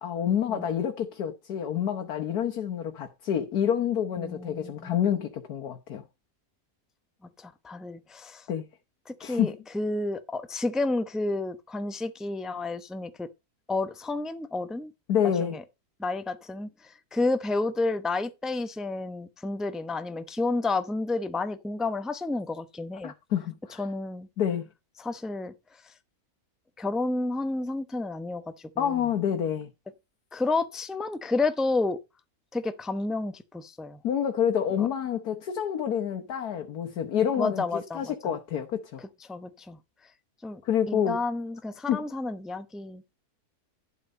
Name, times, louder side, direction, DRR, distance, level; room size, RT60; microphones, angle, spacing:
voice 1, 0.0-6.0 8.5-8.7 9.2-9.6 15.1-15.6 23.0-23.8 24.4-24.7 28.8-29.7 34.0-37.6 37.9-39.0 40.6-41.2 41.9-42.0, left 9 dB, 85° left, 1.6 m, -28 dB
voice 2, 4.2-5.0 7.4-8.4 9.1-13.3 13.7-14.9 15.4-15.6 16.0-23.1 23.8-24.3 25.0-25.5 26.8-29.1 30.3-32.0 32.5-34.0 34.8-34.9 37.4-38.3 39.0-39.8 40.4-40.6 40.9-43.0, left 3 dB, ahead, 0.4 m, -31 dB
11.5 x 5.4 x 5.3 m
omnidirectional pair, 1.6 m